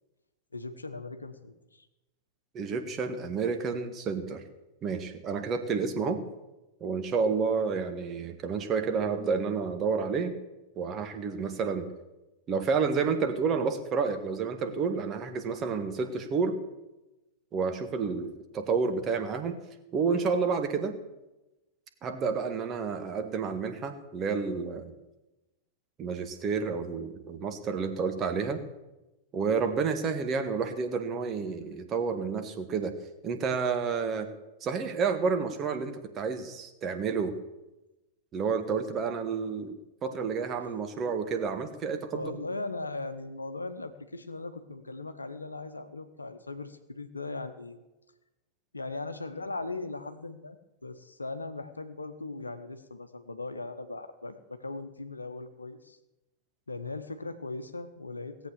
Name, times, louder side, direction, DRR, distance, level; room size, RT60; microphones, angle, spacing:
voice 1, 0.5-1.8 40.6-40.7 41.0-41.1 42.1-47.8 48.7-50.6 50.8-56.0 56.7-58.5, left 3 dB, 80° left, 9 dB, 0.9 m, -39 dB
voice 2, 2.5-4.4 4.8-6.2 6.8-10.3 10.8-11.9 12.5-16.6 17.5-19.6 19.9-20.9 22.0-24.9 26.0-28.6 29.3-32.9 33.2-34.3 34.6-37.3 38.3-39.7 40.0-42.4, right 5 dB, 30° right, 6 dB, 1.5 m, -30 dB
17.0 x 8.1 x 6.8 m, 1.0 s
figure-of-eight pair, 90°, 0 cm